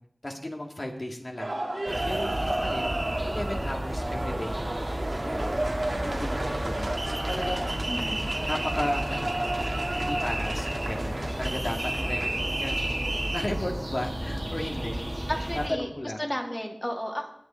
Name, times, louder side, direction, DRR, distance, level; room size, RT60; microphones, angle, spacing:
voice 1, 0.2-1.6 2.0-2.8 3.2-4.6 5.2-5.7 6.0-7.8 8.5-9.3 9.9-13.0 13.3-15.0 15.5-16.2, left 1 dB, 40° left, 1 dB, 2.0 m, -34 dB
sound 1, 1.4-13.4, right 1 dB, 55° right, 2.3 m, -31 dB
sound 2, 1.9-15.7, right 1 dB, 25° right, 2.2 m, -33 dB
voice 2, 7.9-8.3 15.3-15.9 16.2-17.3, equal, 15° left, 1 dB, 2.4 m, -32 dB
19.5 x 9.5 x 4.3 m, 0.67 s
wide cardioid pair, 50°, 0 cm